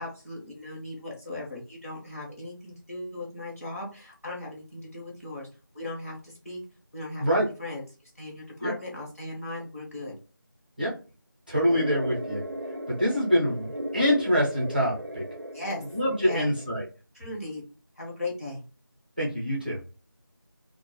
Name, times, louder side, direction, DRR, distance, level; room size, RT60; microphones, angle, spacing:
voice 1, 0.0-5.5 5.7-6.6 6.9-7.2 7.6-10.1 15.5-15.8 16.2-16.5 17.1-17.6 18.0-18.6, left 2 dB, 40° left, -3 dB, 0.8 m, -37 dB
voice 2, 11.5-12.4 12.9-15.2 15.9-16.8 19.2-19.8, equal, 25° right, -5 dB, 0.7 m, -25 dB
sound 1, 11.7-16.7, right 1 dB, 65° right, 0.5 m, -37 dB
2.1 x 2.0 x 3.0 m, 0.34 s
figure-of-eight pair, 180°, 12 cm